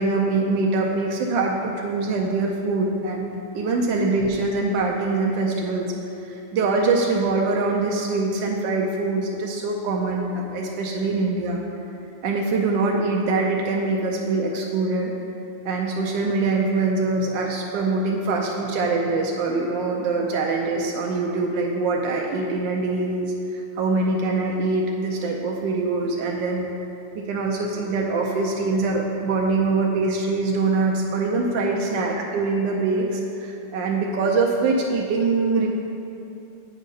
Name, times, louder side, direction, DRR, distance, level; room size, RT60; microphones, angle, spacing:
voice 1, 0.0-3.3 3.5-5.9 6.2-11.6 12.2-15.1 15.6-26.7 27.1-35.7, right 3 dB, 75° right, 0 dB, 1.2 m, -23 dB
8.7 x 3.7 x 5.2 m, 2.7 s
omnidirectional pair, 2.1 m